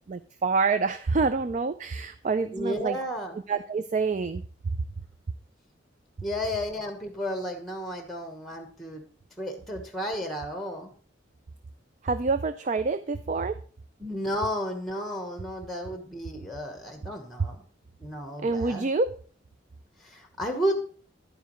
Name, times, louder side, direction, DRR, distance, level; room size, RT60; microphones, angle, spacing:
voice 1, 0.1-3.0 3.5-4.4 12.0-13.6 18.4-19.1, right 4 dB, 40° right, 12 dB, 0.4 m, -27 dB
voice 2, 2.5-3.4 6.2-9.0 9.4-10.9 14.0-17.6 18.0-18.9 20.0-20.8, equal, ahead, 5 dB, 1.1 m, -32 dB
11.0 x 9.4 x 3.1 m, 0.42 s
head